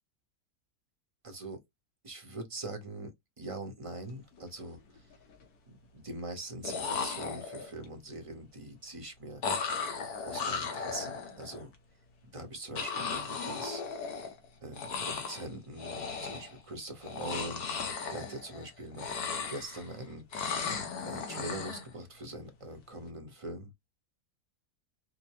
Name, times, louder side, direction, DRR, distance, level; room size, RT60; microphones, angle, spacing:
voice 1, 1.2-1.6 2.0-5.1 5.7-9.4 10.2-11.7 12.3-13.8 14.6-19.2 19.5-20.7 21.1-23.7, right 1 dB, 25° right, 0.8 m, -43 dB
sound 1, 4.2-4.4 4.7-5.3 6.4-6.5 6.6-7.9 9.4-11.6 12.8-14.5 14.7-15.5 15.8-16.6 17.0-18.7 18.9-19.9 20.3-21.9, left 5 dB, 65° left, 1.4 m, -36 dB
5.2 x 2.1 x 3.0 m
omnidirectional pair, 1.8 m